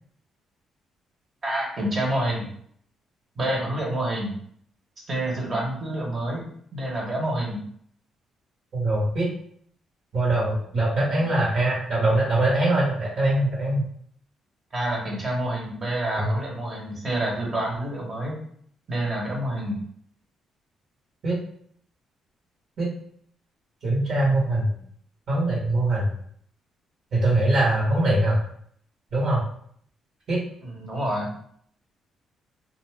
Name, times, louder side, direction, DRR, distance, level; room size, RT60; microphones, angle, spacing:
voice 1, 1.4-2.5 3.4-4.3 5.1-6.5 6.7-7.6 11.2-11.3 14.7-18.4 18.9-19.8 30.6-31.3, right 1 dB, 40° right, -2 dB, 1.1 m, -28 dB
voice 2, 8.7-9.3 10.1-13.8 16.2-16.3 21.2-21.4 22.8-22.9 23.8-24.7 25.3-26.1 27.1-28.4 29.1-29.4 30.3-30.4, right 1 dB, 65° right, -6 dB, 1.2 m, -22 dB
2.4 x 2.4 x 3.3 m, 0.63 s
cardioid pair, 90°, 0 cm